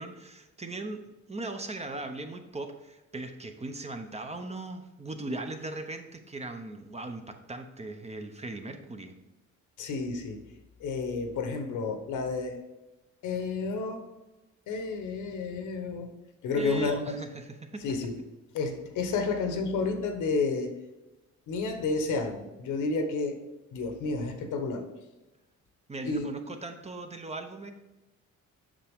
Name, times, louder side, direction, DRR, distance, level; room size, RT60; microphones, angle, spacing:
voice 1, 0.0-9.1 16.6-17.8 25.9-27.7, right 2 dB, 20° right, 6 dB, 0.8 m, -38 dB
voice 2, 9.8-10.4 10.8-12.6 13.2-14.0 14.7-16.2 16.4-17.2 17.8-18.2 18.5-20.8 21.5-23.4 23.7-24.9 26.1-26.2, left 4 dB, 80° left, 6 dB, 1.1 m, -31 dB
7.4 x 5.7 x 3.6 m, 1.1 s
cardioid pair, 90°, 30 cm